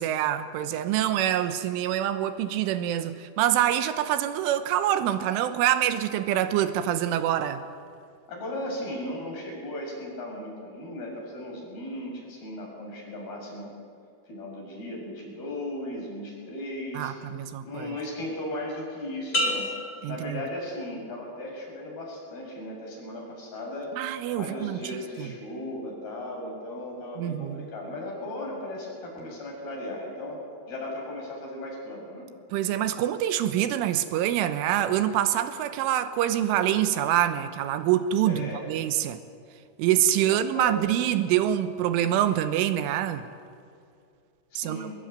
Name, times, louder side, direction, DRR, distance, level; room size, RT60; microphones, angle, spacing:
voice 1, 0.0-7.7 16.9-18.0 20.0-20.4 23.9-25.3 27.2-27.7 32.5-39.2 39.8-43.3 44.6-44.9, right 11 dB, 85° right, 3.5 m, -26 dB
voice 2, 8.3-13.7 14.3-17.1 17.6-19.7 20.1-23.9 24.4-30.4 30.7-32.3 38.2-38.7 40.1-40.8 44.5-44.9, left 1 dB, 50° left, 8.5 m, -36 dB
sound 1, 19.3-21.1 21.6-22.1, left 1 dB, 20° left, 2.1 m, -31 dB
24.0 x 20.5 x 9.3 m
omnidirectional pair, 5.6 m